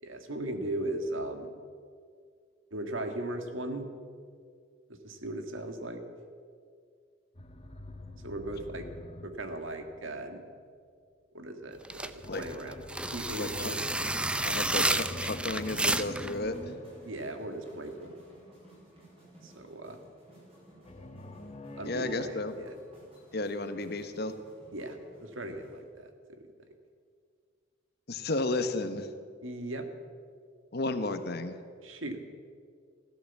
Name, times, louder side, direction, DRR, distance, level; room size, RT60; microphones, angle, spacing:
voice 1, 0.0-1.5 2.7-3.9 4.9-6.0 8.2-8.9 9.2-10.4 11.3-12.8 13.1-13.8 17.1-18.1 19.4-20.0 21.8-22.7 24.7-26.1 29.4-29.9 31.8-32.2, right 1 dB, 80° right, 6 dB, 1.8 m, -37 dB
sound 1, 7.3-10.4 12.2-17.9 20.8-23.3, left 1 dB, 30° left, 1.1 m, -46 dB
sound 2, 11.8-16.3, right 2 dB, 5° right, 0.4 m, -30 dB
sound 3, 13.1-25.8, right 1 dB, 30° right, 5.0 m, -57 dB
voice 2, 14.4-16.7 21.8-22.5 23.3-24.3 28.1-29.1 30.7-31.5, left 2 dB, 50° left, 9 dB, 1.1 m, -33 dB
16.0 x 12.5 x 7.3 m, 2.1 s
head